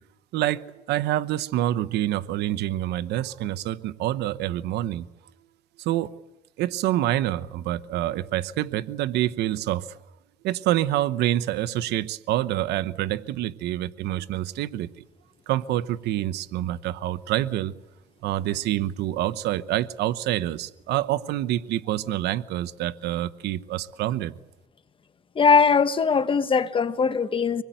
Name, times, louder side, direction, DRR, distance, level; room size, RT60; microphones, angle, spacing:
voice 1, 0.3-5.1 5.8-6.1 6.6-10.0 10.4-14.9 15.5-17.7 18.2-24.3, right 13 dB, 80° right, 0.9 m, -27 dB
voice 2, 25.3-27.6, left 5 dB, 30° left, 1.5 m, -20 dB
25.5 x 21.0 x 9.1 m
cardioid pair, 110°, 17 cm